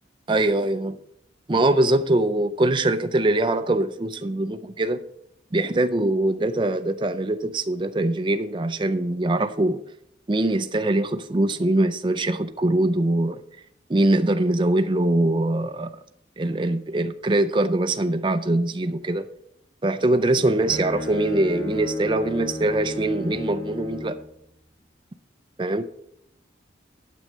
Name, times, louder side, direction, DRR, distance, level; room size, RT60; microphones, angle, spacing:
voice 1, 0.3-1.0 1.5-5.0 5.5-9.8 10.3-13.4 13.9-15.9 16.4-19.2 19.8-24.2 25.6-25.8, right 2 dB, 25° right, 0.5 m, -22 dB
Bowed string instrument, 20.1-24.3, left 2 dB, 60° left, 3.9 m, -33 dB
8.9 x 7.8 x 5.5 m
head